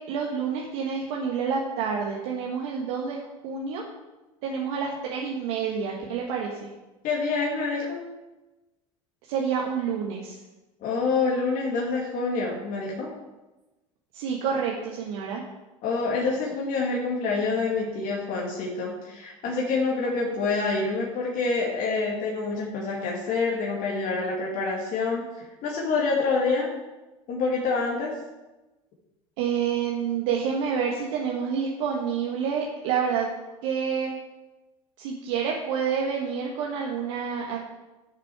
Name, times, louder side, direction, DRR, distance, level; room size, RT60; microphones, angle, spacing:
voice 1, 0.1-3.8 4.4-6.7 9.3-10.4 14.1-15.4 29.4-33.3 33.6-34.2 35.0-37.6, right 6 dB, 65° right, -1 dB, 1.5 m, -28 dB
voice 2, 7.0-8.0 10.8-13.1 15.8-26.7 27.3-28.2, left 4 dB, 50° left, -3 dB, 2.4 m, -27 dB
13.0 x 6.7 x 4.8 m, 1.1 s
hypercardioid pair, 80°, 18 cm